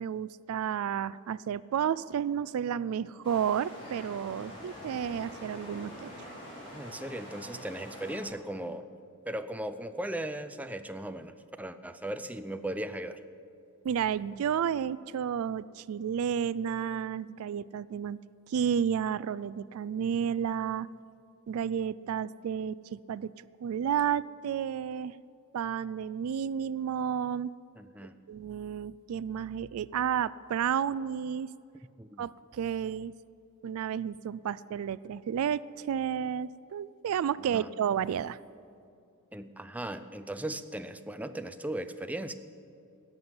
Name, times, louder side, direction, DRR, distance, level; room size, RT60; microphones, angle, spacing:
voice 1, 0.0-6.1 13.8-18.2 18.5-20.9 21.5-23.3 23.6-25.2 25.5-27.5 28.3-31.5 32.2-33.1 33.6-38.4, right 8 dB, 70° right, 18 dB, 0.3 m, -31 dB
sound 1, 3.2-8.2, left 1 dB, 25° left, 4.6 m, -45 dB
voice 2, 6.7-8.8 9.3-13.2 27.8-28.2 32.0-32.3 37.4-37.7 39.3-42.3, right 1 dB, 5° right, 9 dB, 0.5 m, -37 dB
16.5 x 7.0 x 9.5 m, 2.5 s
head